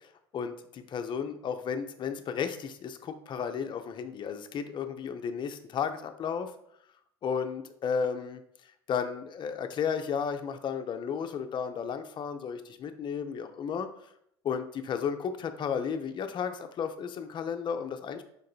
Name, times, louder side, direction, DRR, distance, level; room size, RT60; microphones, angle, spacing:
voice 1, 0.3-6.5 7.2-8.4 8.9-13.9 14.4-18.2, left 7 dB, 35° left, 8 dB, 0.5 m, -33 dB
5.2 x 3.7 x 2.3 m, 0.72 s
hypercardioid pair, 75°, 13 cm